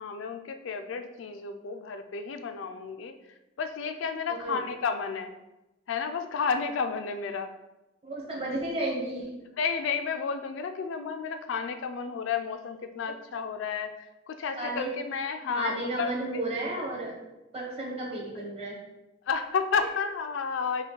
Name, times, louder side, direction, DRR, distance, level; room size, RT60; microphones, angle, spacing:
voice 1, 0.0-3.1 3.6-5.3 5.9-7.5 9.6-16.1 19.3-20.8, left 5 dB, 65° left, 7 dB, 0.4 m, -31 dB
voice 2, 4.3-4.6 8.0-9.4 14.5-14.9 15.5-17.2 17.5-18.8, right 2 dB, 30° right, -3 dB, 1.1 m, -33 dB
5.6 x 2.2 x 3.8 m, 1.0 s
head